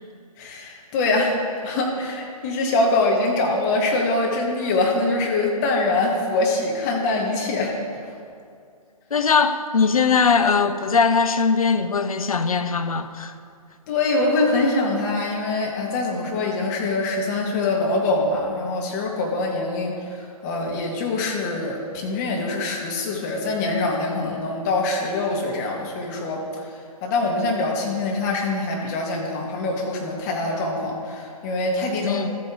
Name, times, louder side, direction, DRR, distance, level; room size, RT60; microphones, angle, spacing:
voice 1, 0.4-1.4 1.6-7.7 13.9-26.4 27.0-32.4, left 2 dB, 25° left, 1.6 m, -24 dB
voice 2, 9.1-13.3 32.0-32.3, left 5 dB, 65° left, 0.7 m, -20 dB
13.5 x 8.5 x 3.7 m
figure-of-eight pair, 135°, 20 cm